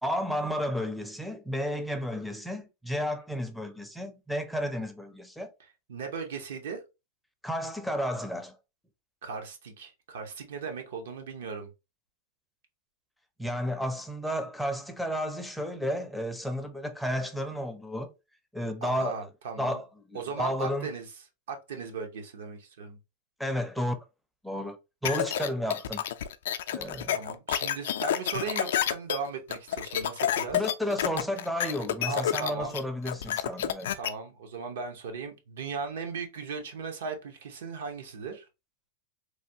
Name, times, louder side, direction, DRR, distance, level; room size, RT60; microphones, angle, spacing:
voice 1, 0.0-5.5 7.4-8.6 13.4-18.1 18.5-19.2 19.6-20.9 23.4-24.0 24.4-24.8 25.0-26.0 26.7-27.2 30.5-33.9, equal, ahead, 0.4 m, -32 dB
voice 2, 5.6-6.8 9.2-11.7 18.8-19.8 20.1-21.1 21.5-23.0 27.1-30.6 32.1-32.8 33.9-38.5, right 5 dB, 75° right, 0.8 m, -37 dB
sound 1, 25.1-34.1, left 10 dB, 75° left, 0.3 m, -29 dB
3.2 x 2.3 x 2.7 m
supercardioid pair, 140°, 0 cm